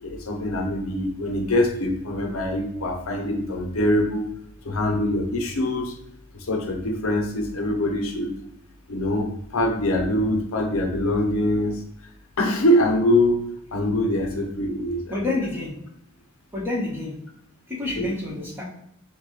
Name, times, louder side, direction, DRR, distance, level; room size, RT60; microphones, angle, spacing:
voice 1, 0.0-4.3 4.6-6.0 6.3-8.3 8.9-11.8 12.4-15.2 18.0-18.1, left 1 dB, 65° left, 3 dB, 0.7 m, -24 dB
voice 2, 15.1-15.7 16.5-17.1 17.7-18.6, left 2 dB, 10° right, -5 dB, 1.3 m, -28 dB
6.3 x 2.3 x 3.2 m, 0.78 s
head